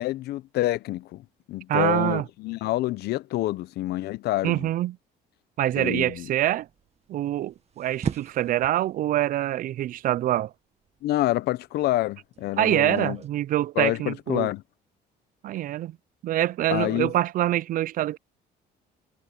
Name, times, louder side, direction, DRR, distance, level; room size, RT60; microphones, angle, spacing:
voice 1, 0.0-4.7 5.8-6.3 11.0-13.2 13.8-14.6 16.7-17.1, left 16 dB, 75° left, 0.7 m, -27 dB
voice 2, 1.7-2.2 4.4-5.0 5.6-6.7 7.1-10.5 12.6-14.5 15.4-16.0 16.2-18.2, right 13 dB, 55° right, 0.4 m, -25 dB
sound 1, 5.7-13.3, right 7 dB, 40° right, 1.7 m, -40 dB
cardioid pair, 110°, 17 cm